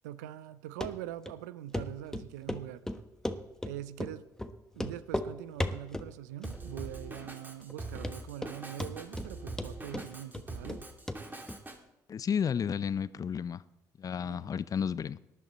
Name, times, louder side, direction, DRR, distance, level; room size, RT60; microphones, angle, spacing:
voice 1, 0.0-2.9 3.6-4.2 4.7-10.8 14.2-14.5, right 13 dB, 80° right, 0.5 m, -43 dB
Run, 0.8-0.9 1.3-1.4 1.7-1.9 2.1-3.7 4.0-4.1 4.4-4.5 4.8-5.3 5.6-6.1 6.4-6.9 7.2-7.3 7.7-7.8 8.0-8.5 8.8-9.3 9.6-10.8 11.1-11.2 11.5-11.6, left 1 dB, 5° left, 1.1 m, -35 dB
Drum kit, 6.4-11.8, right 2 dB, 20° right, 2.5 m, -43 dB
voice 2, 12.1-13.6 14.0-15.2, left 7 dB, 40° left, 0.6 m, -32 dB
18.5 x 11.0 x 4.3 m
hypercardioid pair, 50°, 9 cm